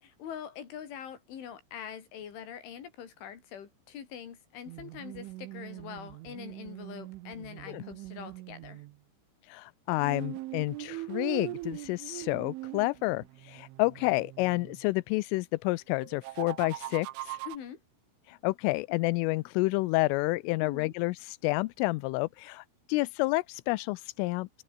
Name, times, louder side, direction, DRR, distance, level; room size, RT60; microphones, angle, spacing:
voice 1, 0.0-8.9 17.5-17.8 20.6-20.9, left 8 dB, 70° left, 5.9 m, -44 dB
sound 1, 4.7-9.0 10.0-14.8 16.0-17.6, right 18 dB, 80° right, 3.2 m, -41 dB
voice 2, 9.5-17.4 18.3-24.6, left 23 dB, 85° left, 3.2 m, -30 dB
omnidirectional pair, 5.9 m